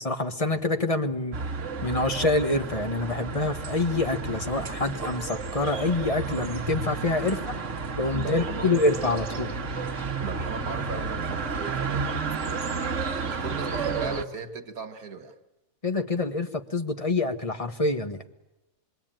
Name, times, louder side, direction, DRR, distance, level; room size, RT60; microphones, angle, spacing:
voice 1, 0.0-1.4 1.8-7.5 8.0-9.5 15.8-18.2, left 2 dB, 25° left, 1.4 m, -26 dB
sound 1, 1.3-14.3, right 4 dB, 60° right, 1.7 m, -32 dB
voice 2, 8.1-8.8 10.2-15.4, right 5 dB, 85° right, 2.0 m, -38 dB
26.5 x 23.0 x 9.0 m
omnidirectional pair, 1.5 m